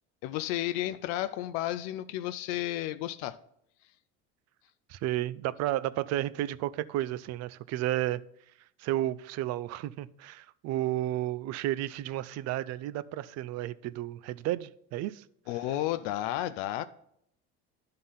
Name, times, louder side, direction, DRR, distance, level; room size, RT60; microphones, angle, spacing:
voice 1, 0.2-3.4 15.5-16.8, left 14 dB, 85° left, 0.5 m, -32 dB
voice 2, 4.9-8.2 8.8-15.2, right 14 dB, 60° right, 0.5 m, -32 dB
11.0 x 3.8 x 5.5 m
supercardioid pair, 100°, 30 cm